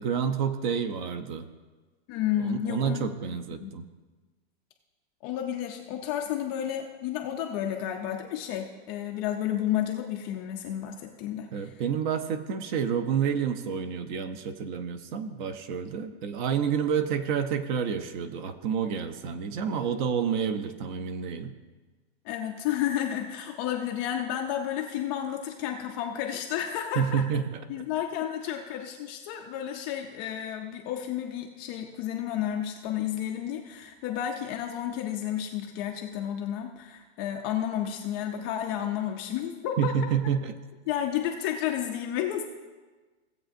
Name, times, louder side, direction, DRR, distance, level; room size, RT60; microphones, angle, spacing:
voice 1, 0.0-1.5 2.4-3.8 11.5-21.5 27.0-27.6 39.8-40.5, right 7 dB, 45° right, 11 dB, 0.7 m, -29 dB
voice 2, 2.1-3.1 3.6-3.7 5.2-11.8 22.2-27.2 27.7-39.9 40.9-42.5, left 10 dB, 25° left, 3 dB, 0.3 m, -31 dB
16.5 x 7.9 x 2.6 m, 1.3 s
supercardioid pair, 155°, 33 cm